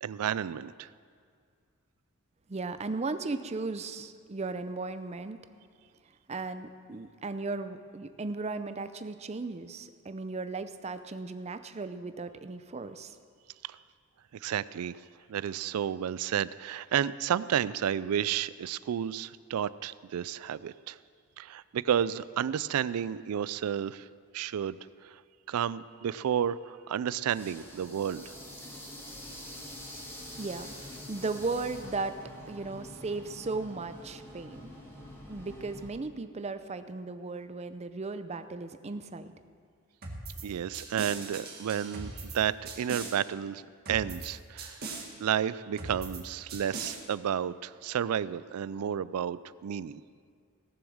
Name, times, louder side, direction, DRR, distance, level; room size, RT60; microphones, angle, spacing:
voice 1, 0.0-0.9 14.4-15.0 15.3-21.0 21.4-24.1 24.3-24.8 25.0-25.1 25.5-28.3 40.4-43.6 43.9-44.8 45.2-50.0, right 9 dB, 90° right, 18 dB, 0.4 m, -31 dB
voice 2, 2.5-5.4 6.3-13.2 30.4-32.2 32.5-34.7 35.3-39.3, right 3 dB, 30° right, 10 dB, 0.5 m, -36 dB
sound 1, 27.3-35.9, left 1 dB, 10° left, 1.8 m, -46 dB
sound 2, 40.0-40.4 40.7-42.4 42.7-43.1 43.9-44.3 44.6-45.1 45.8-46.2 46.5-47.0, right 3 dB, 45° right, 1.8 m, -40 dB
18.0 x 7.2 x 6.3 m, 2.1 s
head